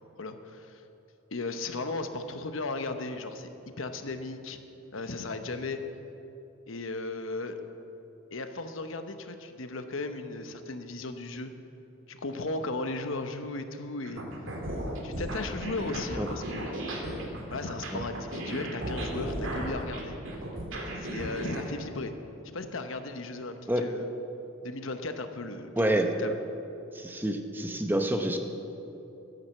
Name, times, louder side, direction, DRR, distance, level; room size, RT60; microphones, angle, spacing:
voice 1, 0.2-0.8 1.3-3.5 3.8-4.6 4.9-5.8 6.7-7.6 8.3-11.5 12.1-14.2 15.0-16.8 17.5-20.2 21.0-22.1 22.5-24.1 24.6-26.4, left 3 dB, 75° left, 8 dB, 1.0 m, -36 dB
sound 1, 14.0-21.6, right 1 dB, 70° right, 2.2 m, -35 dB
voice 2, 25.8-26.1 26.9-28.4, right 1 dB, 10° right, 4 dB, 0.8 m, -27 dB
12.0 x 10.5 x 7.5 m, 2.9 s
head